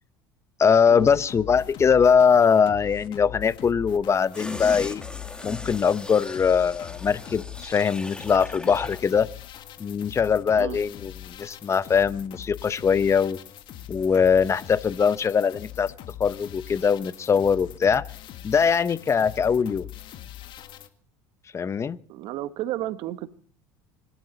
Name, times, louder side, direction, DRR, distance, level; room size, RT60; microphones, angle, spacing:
voice 1, 0.6-5.0 5.4-9.3 9.8-13.4 13.9-15.9 16.2-18.0 18.4-19.9 21.5-22.0, left 6 dB, 30° left, 16 dB, 0.9 m, -21 dB
sound 1, 1.0-20.9, left 12 dB, 55° left, 1.7 m, -42 dB
sound 2, 4.3-9.1 9.4-9.6, left 1 dB, 10° left, 2.0 m, -39 dB
voice 2, 22.1-23.3, right 14 dB, 60° right, 12 dB, 1.3 m, -32 dB
26.0 x 12.5 x 4.1 m, 0.44 s
hypercardioid pair, 85°, 10 cm